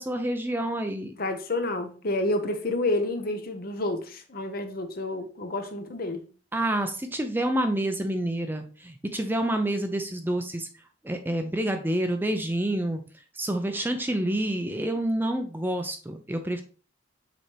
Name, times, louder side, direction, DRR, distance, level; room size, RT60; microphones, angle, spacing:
voice 1, 0.0-1.1 6.5-10.7 11.0-13.0 13.3-16.6, right 1 dB, 10° right, 0.5 m, -28 dB
voice 2, 1.2-6.2, left 2 dB, 50° left, 0.9 m, -29 dB
6.5 x 4.4 x 3.3 m
head